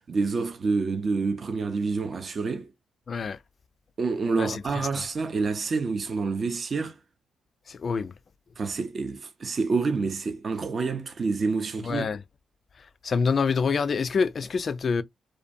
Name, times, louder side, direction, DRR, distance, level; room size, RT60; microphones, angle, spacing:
voice 1, 0.1-2.7 4.0-7.0 8.6-12.1, right 4 dB, 50° right, 0.4 m, -28 dB
voice 2, 3.1-3.4 4.4-4.6 7.7-8.1 11.8-12.2 13.0-15.0, left 5 dB, 50° left, 0.3 m, -26 dB
2.5 x 2.2 x 2.5 m
supercardioid pair, 50°, 0 cm